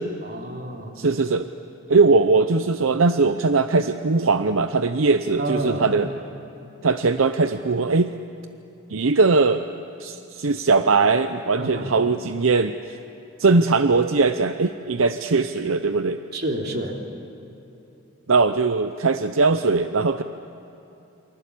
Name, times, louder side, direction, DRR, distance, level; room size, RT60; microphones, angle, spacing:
voice 1, 0.2-1.0 5.4-5.9 11.6-11.9 16.3-16.9, right 1 dB, 50° right, 1 dB, 3.2 m, -28 dB
voice 2, 1.0-1.5 1.9-6.1 6.8-8.1 8.9-9.6 10.0-13.0 13.4-16.2 18.3-20.2, right 4 dB, 80° right, 9 dB, 0.7 m, -20 dB
29.0 x 24.0 x 8.4 m, 2.9 s
head